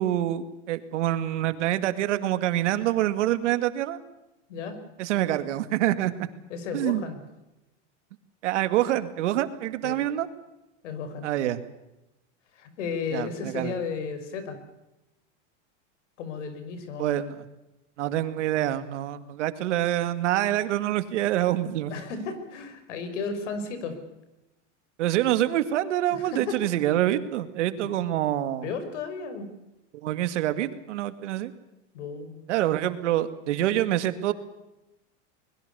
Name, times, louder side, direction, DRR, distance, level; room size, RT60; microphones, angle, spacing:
voice 1, 0.0-4.0 5.0-6.3 6.7-7.0 8.4-10.3 11.2-11.6 13.1-13.7 17.0-17.4 18.0-21.9 25.0-28.7 30.0-31.5 32.5-34.3, right 13 dB, 80° right, 11 dB, 2.3 m, -26 dB
voice 2, 6.5-7.2 9.8-10.0 10.8-11.3 12.5-14.6 16.2-17.2 21.9-24.0 26.1-26.6 27.8-27.9 28.6-29.5 31.9-32.5, left 5 dB, 80° left, 10 dB, 5.6 m, -34 dB
23.5 x 21.5 x 7.0 m, 0.95 s
supercardioid pair, 160°, 36 cm